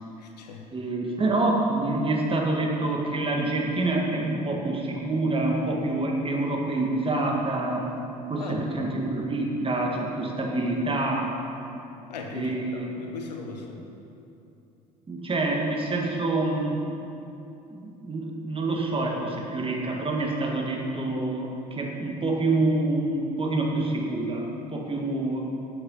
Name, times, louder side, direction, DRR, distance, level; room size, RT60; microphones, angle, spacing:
voice 1, 0.2-0.7 8.4-8.7 12.1-13.8, left 4 dB, 80° left, 3 dB, 1.0 m, -38 dB
voice 2, 0.7-7.8 8.3-11.3 12.3-12.9 15.1-16.7 17.7-25.4, right 2 dB, 25° right, -1 dB, 2.0 m, -27 dB
9.6 x 7.3 x 5.7 m, 2.8 s
hypercardioid pair, 65°, 21 cm